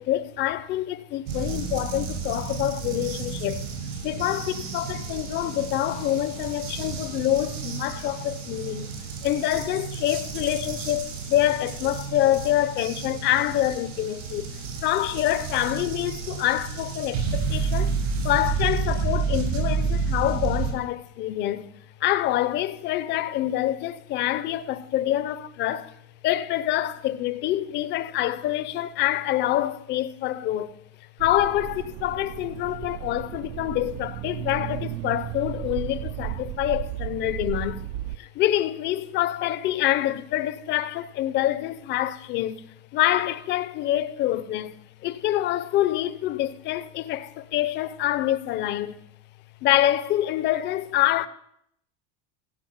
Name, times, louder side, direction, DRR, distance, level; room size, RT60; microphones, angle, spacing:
voice 1, 0.0-3.7 4.0-8.9 9.2-18.0 18.2-21.7 22.0-25.9 26.2-30.8 31.2-37.8 38.2-49.0 49.6-51.3, left 13 dB, 30° left, 0.5 m, -26 dB
sound 1, 1.3-20.7, right 5 dB, 85° right, 5.7 m, -31 dB
sound 2, 31.2-38.2, right 15 dB, 55° right, 0.5 m, -34 dB
16.0 x 6.0 x 7.2 m
cardioid pair, 165°, 35 cm